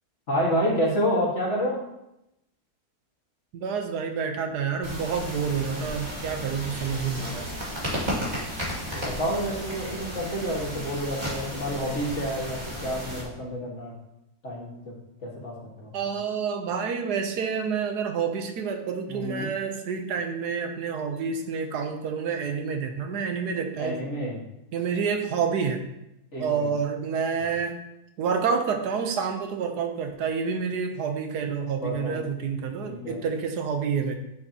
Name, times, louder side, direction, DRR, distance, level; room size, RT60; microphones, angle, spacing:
voice 1, 0.3-1.8 8.0-8.4 8.9-13.9 14.4-15.0 15.2-15.9 19.1-19.5 23.8-24.4 26.3-26.7 31.8-32.2 32.8-33.2, equal, 45° left, -4 dB, 2.2 m, -29 dB
voice 2, 3.5-7.5 15.9-24.0 24.7-25.8 26.4-27.8 28.2-34.2, right 6 dB, 80° right, 5 dB, 1.4 m, -28 dB
sound 1, 4.8-13.2, equal, 25° right, 2.5 m, -34 dB
10.5 x 6.7 x 2.9 m, 0.87 s
omnidirectional pair, 1.7 m